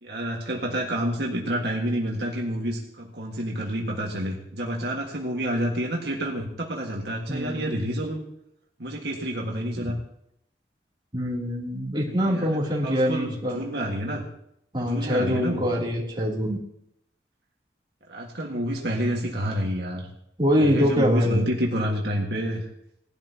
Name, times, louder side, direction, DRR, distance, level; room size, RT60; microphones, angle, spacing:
voice 1, 0.0-8.2 8.8-10.0 12.1-14.2 14.8-15.7 18.1-20.1 20.6-22.7, equal, 65° right, -1 dB, 1.7 m, -29 dB
voice 2, 7.3-7.8 11.1-13.6 14.7-16.6 20.4-21.4, equal, 25° right, -4 dB, 3.0 m, -24 dB
19.5 x 12.0 x 2.9 m, 0.75 s
head